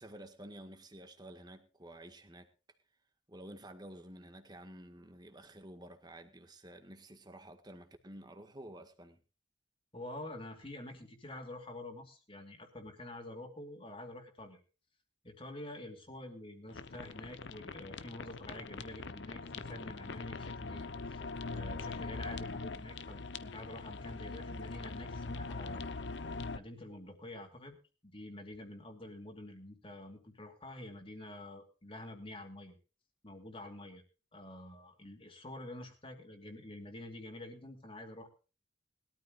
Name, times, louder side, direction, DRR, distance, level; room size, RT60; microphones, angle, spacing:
voice 1, 0.0-2.5 3.3-9.2, right 1 dB, 20° right, 1.8 m, -51 dB
voice 2, 9.9-14.6 15.2-21.2 21.5-25.8 26.5-27.8 28.0-32.8 33.2-34.0 34.3-38.3, left 1 dB, 25° left, 2.7 m, -48 dB
sound 1, 16.7-26.6, left 3 dB, 60° left, 0.9 m, -42 dB
21.0 x 13.5 x 2.5 m
head